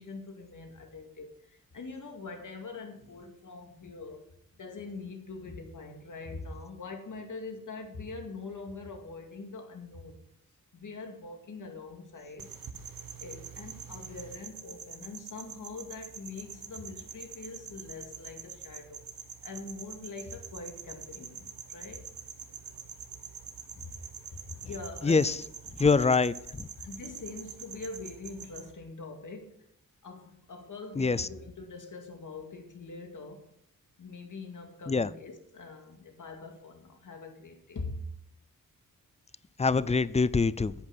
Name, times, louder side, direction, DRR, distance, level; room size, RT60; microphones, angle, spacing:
voice 1, 0.0-4.2 4.5-10.2 10.7-12.5 13.2-19.0 19.4-22.1 23.8-23.9 24.3-25.3 25.8-26.0 26.8-29.6 30.0-33.5 34.0-38.1, left 3 dB, 60° left, 4 dB, 2.3 m, -43 dB
sound 1, 12.4-28.7, right 7 dB, 70° right, 1.3 m, -45 dB
voice 2, 25.0-25.3 25.8-26.7 31.0-31.3 34.9-35.1 39.6-40.7, left 4 dB, 20° left, 18 dB, 0.4 m, -24 dB
10.0 x 9.7 x 6.0 m, 0.74 s
wide cardioid pair, 150°, 35 cm